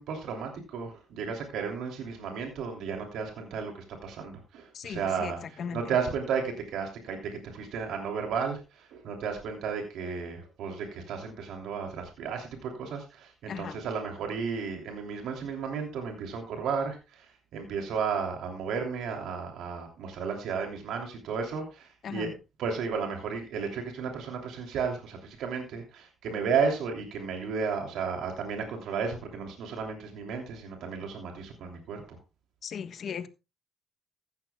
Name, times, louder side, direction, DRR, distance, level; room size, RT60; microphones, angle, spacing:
voice 1, 0.0-22.3 22.6-32.2, right 6 dB, 85° right, 3 dB, 3.0 m, -33 dB
voice 2, 4.7-5.9 13.5-13.8 22.0-22.3 32.6-33.3, left 7 dB, 60° left, 10 dB, 1.3 m, -37 dB
15.5 x 13.0 x 2.3 m, 0.28 s
cardioid pair, 90°, 0 cm